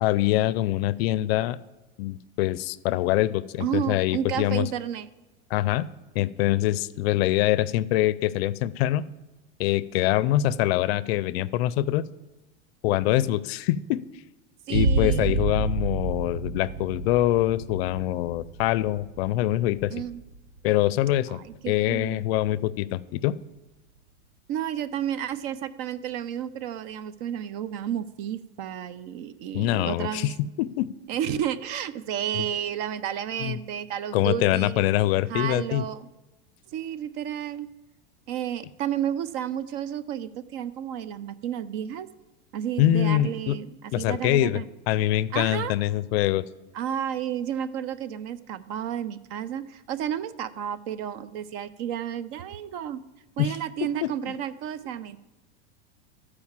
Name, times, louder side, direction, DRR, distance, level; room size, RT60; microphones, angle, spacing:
voice 1, 0.0-1.6 2.0-4.7 5.5-5.9 6.1-9.0 9.6-12.0 12.8-14.0 14.7-19.9 20.6-21.4 21.6-23.4 29.5-30.9 32.4-32.5 33.4-33.6 34.1-35.8 42.8-43.6 43.9-46.4 53.4-53.6 54.0-54.1, left 14 dB, 60° left, 19 dB, 0.5 m, -24 dB
voice 2, 3.6-5.1 14.7-15.4 19.9-20.2 21.3-22.2 24.5-30.3 31.1-34.9 35.3-36.1 36.7-37.7 38.3-42.1 42.5-43.7 44.0-44.7 45.3-45.7 46.7-53.0 53.4-55.2, right 9 dB, 45° right, 16 dB, 0.5 m, -31 dB
sound 1, 14.7-22.1, right 3 dB, 75° right, 1.1 m, -30 dB
13.0 x 4.9 x 7.3 m, 1.1 s
supercardioid pair, 135°, 35 cm